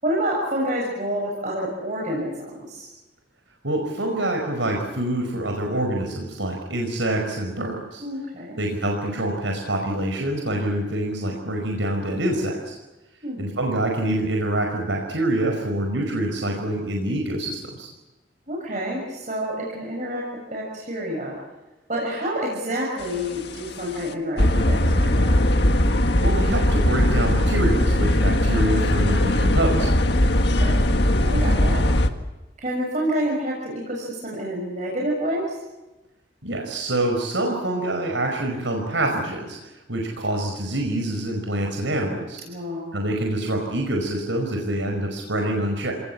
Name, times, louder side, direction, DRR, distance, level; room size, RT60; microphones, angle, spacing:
voice 1, 0.0-2.9 8.0-8.6 13.2-13.4 18.5-20.2 20.5-21.4 21.9-25.3 30.5-30.8 31.2-31.8 32.6-35.6 42.4-42.9, equal, 40° right, -2 dB, 6.7 m, -28 dB
voice 2, 3.6-8.0 8.6-12.8 13.4-17.9 26.2-29.9 36.4-42.4 42.9-45.9, right 1 dB, 90° right, 2 dB, 5.0 m, -26 dB
sound 1, 23.1-23.5 23.9-24.0 24.4-32.1, left 1 dB, 60° left, 1.7 m, -19 dB
28.5 x 19.5 x 8.7 m, 1.1 s
head